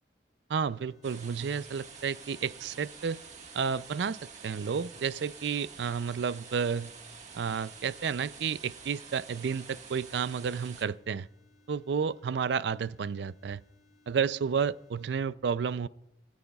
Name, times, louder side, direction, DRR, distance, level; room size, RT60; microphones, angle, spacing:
voice 1, 0.5-3.2 3.5-6.9 7.3-11.3 11.7-13.6 14.1-15.9, right 6 dB, 75° right, 0.4 m, -31 dB
sound 1, 0.6-15.2, left 2 dB, 65° left, 2.2 m, -66 dB
sound 2, 1.0-10.8, right 5 dB, 40° right, 1.6 m, -48 dB
27.0 x 13.5 x 2.3 m
head